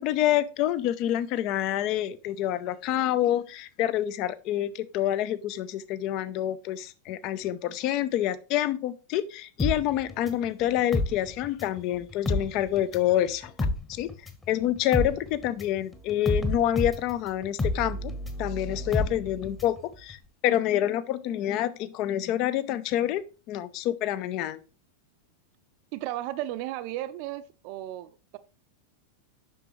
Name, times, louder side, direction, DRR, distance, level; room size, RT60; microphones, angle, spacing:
voice 1, 0.0-13.5 13.9-14.1 14.5-18.1 18.4-23.2 23.5-24.6, left 12 dB, 40° left, 0.5 m, -27 dB
sound 1, 9.6-11.8 12.1-19.8 20.1-20.2, left 2 dB, 15° left, 1.1 m, -30 dB
voice 2, 25.9-28.4, right 14 dB, 45° right, 0.5 m, -34 dB
7.8 x 5.9 x 3.1 m
figure-of-eight pair, 90°, 0 cm